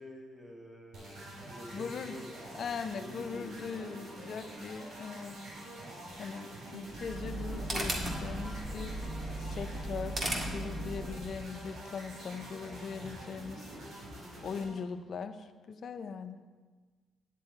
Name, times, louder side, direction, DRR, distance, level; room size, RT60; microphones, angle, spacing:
voice 1, 0.0-4.5, left 1 dB, 20° right, 0 dB, 2.1 m, -49 dB
sound 1, 0.9-14.6, right 1 dB, 75° right, 3.2 m, -46 dB
voice 2, 1.7-2.2 2.5-5.3 6.2-9.0 9.4-13.8 14.4-16.4, left 5 dB, 55° left, 9 dB, 0.6 m, -40 dB
sound 2, 6.9-11.3, right 1 dB, 35° right, 1.9 m, -36 dB
9.8 x 8.5 x 4.4 m, 1.4 s
cardioid pair, 90°, 0 cm